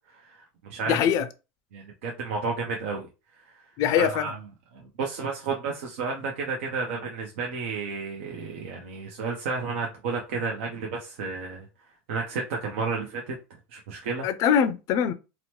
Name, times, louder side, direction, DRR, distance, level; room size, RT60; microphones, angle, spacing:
voice 1, 0.1-1.0 1.7-3.1 3.5-3.6 4.0-4.4 4.7-11.7 12.1-13.3 13.7-14.3, right 4 dB, 80° right, 0.6 m, -32 dB
voice 2, 0.9-1.3 3.8-4.3 14.2-15.1, left 8 dB, 55° left, 0.4 m, -23 dB
2.9 x 2.1 x 3.0 m
supercardioid pair, 115°, 7 cm